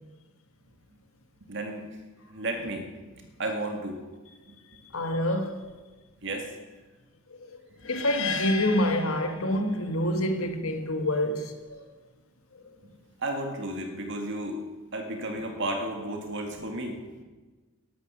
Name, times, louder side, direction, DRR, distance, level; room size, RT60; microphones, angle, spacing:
voice 1, 1.4-1.8 2.3-4.0 4.4-4.5 6.2-6.5 7.8-7.9 13.2-14.6 14.9-17.2, right 1 dB, 60° right, 2.2 m, -33 dB
voice 2, 4.9-5.6 7.3-7.6 7.8-11.8, left 1 dB, 80° left, 1.5 m, -27 dB
sound 1, 7.8-10.0, left 5 dB, 65° left, 1.2 m, -34 dB
12.5 x 11.5 x 7.1 m
head